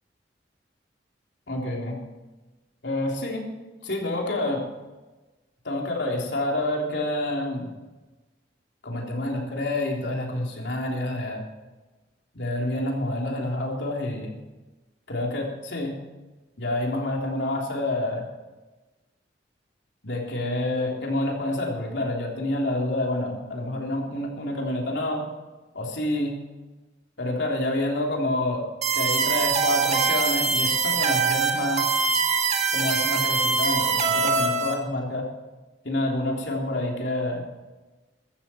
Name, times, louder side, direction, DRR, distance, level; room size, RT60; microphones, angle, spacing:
voice 1, 1.5-2.0 2.8-3.5 3.8-4.7 5.6-7.7 8.8-11.4 12.3-14.3 15.1-16.0 16.6-18.2 20.0-25.2 25.7-26.4 27.2-28.6 28.9-32.0 32.7-35.3 35.8-37.4, left 1 dB, 75° left, -1 dB, 3.5 m, -28 dB
sound 1, 28.8-34.8, right 5 dB, 40° right, 1.6 m, -23 dB
15.0 x 13.5 x 4.5 m, 1.2 s
head